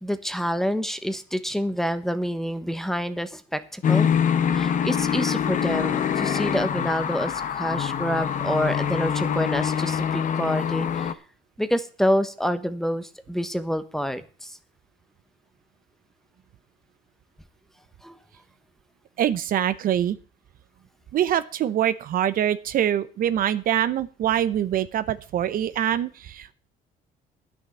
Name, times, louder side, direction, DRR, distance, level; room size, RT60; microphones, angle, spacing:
voice 1, 0.0-4.1 4.5-11.2 11.6-14.6 18.0-18.2, equal, ahead, 11 dB, 1.0 m, -27 dB
sound 1, 3.8-11.1, left 8 dB, 50° left, 1.1 m, -25 dB
voice 2, 19.2-20.2 21.1-26.5, right 11 dB, 55° right, 14 dB, 0.7 m, -24 dB
10.5 x 6.4 x 8.4 m, 0.39 s
cardioid pair, 110°, 17 cm